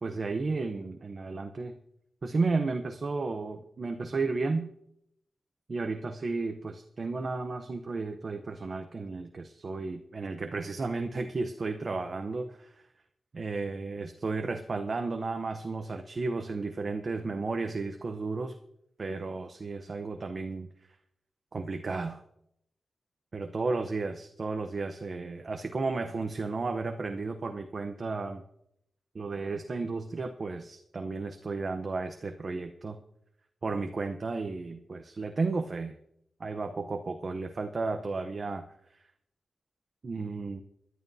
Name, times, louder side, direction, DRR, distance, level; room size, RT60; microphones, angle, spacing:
voice 1, 0.0-1.8 2.2-4.7 5.7-12.7 13.3-18.6 19.0-20.7 21.5-22.2 23.3-28.4 29.1-33.0 33.6-35.9 36.4-38.6 40.0-40.6, right 3 dB, 45° right, 6 dB, 0.8 m, -33 dB
22.5 x 11.0 x 2.7 m, 0.77 s
wide cardioid pair, 120°, 0 cm